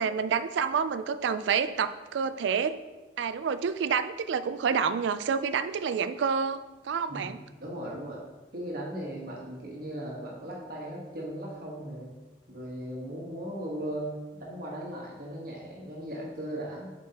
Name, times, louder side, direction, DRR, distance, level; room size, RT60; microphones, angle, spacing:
voice 1, 0.0-2.8 3.2-6.6 6.8-7.4, right 6 dB, 80° right, 13 dB, 0.3 m, -28 dB
voice 2, 7.6-8.2 8.5-12.1 12.5-16.9, right 1 dB, 55° right, -3 dB, 1.3 m, -37 dB
7.3 x 4.6 x 2.9 m, 1.2 s
head